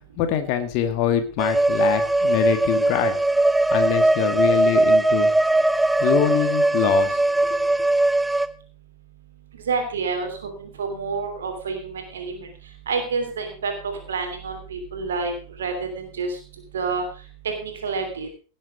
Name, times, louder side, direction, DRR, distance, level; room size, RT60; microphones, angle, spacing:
voice 1, 0.2-3.2 3.7-5.3 6.0-7.2 7.5-7.6, left 10 dB, 45° left, 7 dB, 1.9 m, -24 dB
sound 1, 1.4-8.5, right 2 dB, 5° right, 0.9 m, -20 dB
voice 2, 9.5-12.5 12.9-16.4 16.7-17.0 17.4-18.3, right 4 dB, 65° right, 5 dB, 3.0 m, -28 dB
18.0 x 7.5 x 5.1 m, 0.37 s
figure-of-eight pair, 90°, 0 cm